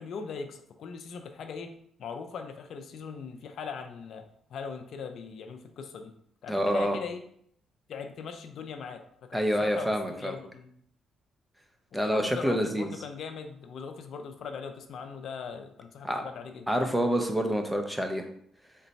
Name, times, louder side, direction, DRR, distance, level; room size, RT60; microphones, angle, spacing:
voice 1, 0.0-4.3 4.5-6.1 6.4-7.2 7.9-9.0 9.3-10.7 12.0-16.9, left 5 dB, 65° left, 6 dB, 0.4 m, -40 dB
voice 2, 6.5-7.0 9.3-10.3 11.9-12.9 16.0-16.2 16.7-18.3, equal, 5° right, 5 dB, 0.5 m, -27 dB
3.9 x 2.2 x 4.0 m, 0.66 s
cardioid pair, 90°, 0 cm